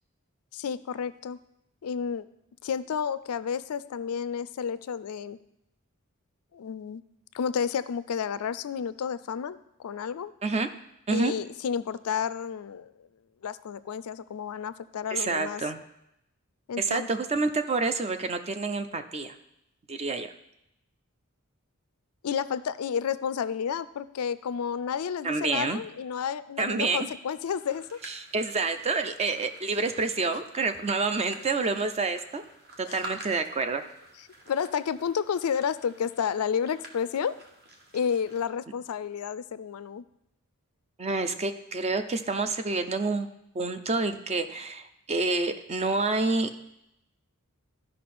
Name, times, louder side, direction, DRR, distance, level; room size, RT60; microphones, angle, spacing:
voice 1, 0.5-1.4 1.8-2.3 2.6-5.4 6.5-7.0 7.3-10.3 11.1-13.1 13.4-15.6 16.7-17.1 22.2-28.0 32.8-33.1 34.5-37.4 37.9-40.0, left 7 dB, 75° left, 15 dB, 0.4 m, -31 dB
voice 2, 15.1-15.8 16.8-19.3 19.9-20.3 25.2-25.8 26.6-27.1 28.1-32.4 32.8-33.9 41.0-43.3 43.5-46.5, right 3 dB, 30° right, 9 dB, 0.5 m, -28 dB
sound 1, 27.5-38.4, right 1 dB, 45° right, 1.4 m, -50 dB
13.0 x 5.5 x 4.3 m, 0.83 s
head